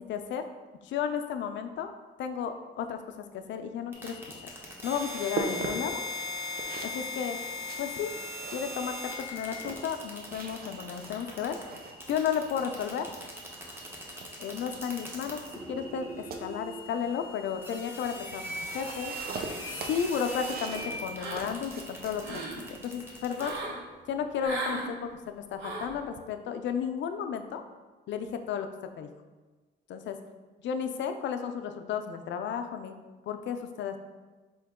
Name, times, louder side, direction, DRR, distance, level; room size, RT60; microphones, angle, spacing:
voice 1, 0.1-0.4 0.8-1.9 2.2-4.5 4.8-6.0 6.8-7.4 7.8-8.1 8.5-11.6 12.1-13.1 14.4-15.4 15.7-18.4 18.7-19.1 19.9-22.4 22.7-23.6 24.1-27.6 28.1-28.7 29.0-29.1 29.9-30.2 30.6-32.9 33.3-34.0, left 7 dB, 70° left, 7 dB, 0.4 m, -33 dB
sound 1, 3.9-23.6, left 1 dB, 10° right, 0.9 m, -40 dB
sound 2, 4.4-23.2, right 4 dB, 50° right, 0.5 m, -43 dB
sound 3, 21.2-21.7 22.0-22.6 23.4-23.8 24.4-24.9 25.6-25.9, right 2 dB, 70° right, 1.1 m, -36 dB
4.4 x 2.8 x 3.6 m, 1.3 s
cardioid pair, 90°, 20 cm